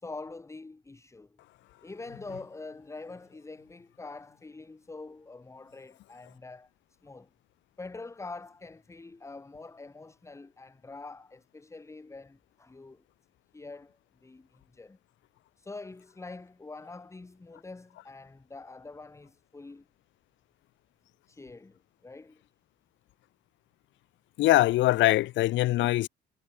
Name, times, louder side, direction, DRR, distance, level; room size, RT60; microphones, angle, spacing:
voice 1, 0.0-1.4 1.8-6.7 7.0-7.3 7.8-13.0 13.5-15.0 15.6-19.9 21.3-22.4, left 3 dB, 15° left, 1.5 m, -45 dB
voice 2, 24.4-26.1, left 16 dB, 70° left, 0.7 m, -22 dB
cardioid pair, 110°, 20 cm